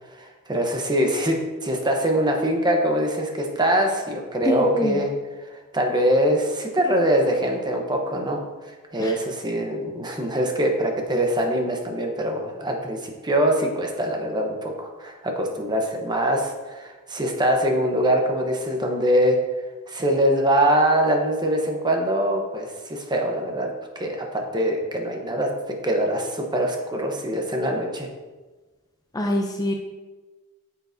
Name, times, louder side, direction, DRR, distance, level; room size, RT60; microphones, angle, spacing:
voice 1, 0.2-5.1 5.5-8.4 8.7-19.4 19.9-23.7 23.9-25.5 25.8-28.1, right 1 dB, 20° right, 2 dB, 0.9 m, -23 dB
voice 2, 4.4-5.0 9.0-9.2 29.1-29.7, left 1 dB, 15° left, 2 dB, 0.5 m, -24 dB
9.2 x 6.7 x 2.7 m, 1.3 s
head